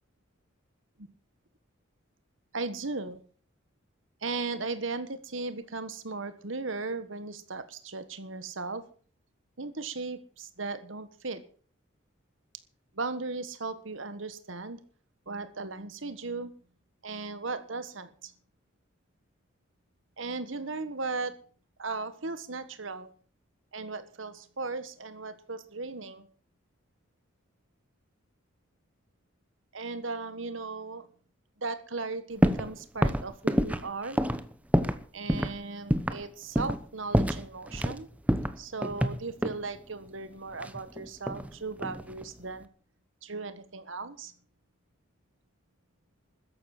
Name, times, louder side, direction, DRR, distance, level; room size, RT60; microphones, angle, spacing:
voice 1, 2.5-3.2 4.2-8.8 9.6-11.4 12.9-14.8 15.3-16.5 17.0-18.3 20.2-21.4 21.8-23.1 23.7-26.3 29.7-31.1 31.6-34.2 35.1-38.1 38.6-42.7 43.2-44.3, right 3 dB, 75° right, 11 dB, 1.5 m, -37 dB
sound 1, 32.4-32.7 33.0-35.0 35.3-35.5 35.9-36.2 36.6-36.8 37.1-38.0 38.3-39.6 40.6-41.5 41.8-42.2, equal, 5° right, 1.0 m, -27 dB
14.0 x 10.5 x 7.7 m, 0.43 s
head